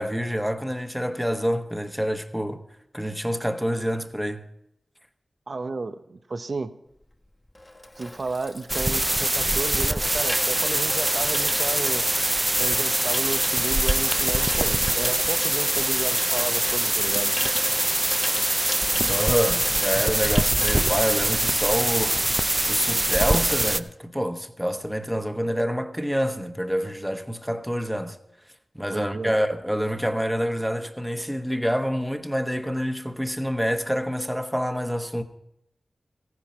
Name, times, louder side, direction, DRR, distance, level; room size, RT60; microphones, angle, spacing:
voice 1, 0.0-2.6 2.9-4.4 19.1-22.2 22.7-28.2 28.7-35.2, equal, ahead, 1.0 m, -27 dB
voice 2, 5.5-6.8 8.0-12.0 12.6-17.3 28.9-29.3, right 3 dB, 65° right, 0.7 m, -32 dB
Water tap faucet / Sink (filling or washing), 7.0-22.1 22.4-22.7, left 1 dB, 25° left, 1.2 m, -37 dB
sound 1, 8.7-23.8, right 1 dB, 20° right, 0.5 m, -23 dB
14.5 x 11.0 x 4.4 m
cardioid pair, 55°, 0 cm